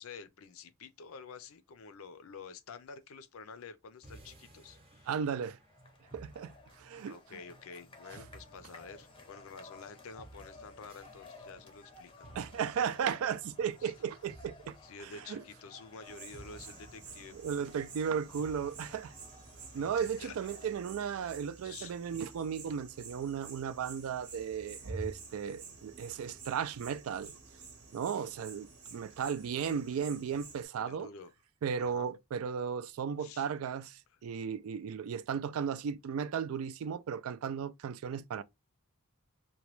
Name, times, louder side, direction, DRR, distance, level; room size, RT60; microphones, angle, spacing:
voice 1, 0.0-5.1 7.1-12.3 13.8-13.9 14.8-17.7 19.7-20.4 21.2-21.9 30.8-31.3 31.8-32.1 33.2-33.5, left 5 dB, 70° left, 0.5 m, -49 dB
sound 1, 4.0-20.4, right 2 dB, 25° right, 0.8 m, -58 dB
voice 2, 5.1-5.6 6.1-7.2 12.4-14.8 15.3-15.4 17.3-19.1 19.7-27.4 27.9-31.1 31.6-38.4, right 7 dB, 70° right, 0.3 m, -35 dB
sound 2, 5.6-20.8, left 3 dB, 25° left, 0.6 m, -56 dB
sound 3, 16.0-30.7, right 3 dB, 85° right, 0.9 m, -50 dB
2.9 x 2.2 x 3.0 m
head